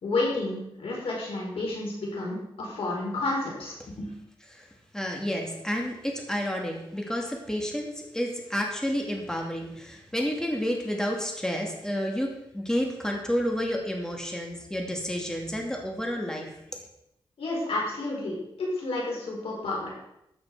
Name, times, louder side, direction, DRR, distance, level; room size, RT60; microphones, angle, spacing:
voice 1, 0.0-4.1 17.4-19.9, left 2 dB, 90° left, -3 dB, 5.1 m, -31 dB
voice 2, 4.9-16.6, equal, 5° left, 0 dB, 2.5 m, -30 dB
13.5 x 8.8 x 4.9 m, 0.82 s
wide cardioid pair, 95°, 9 cm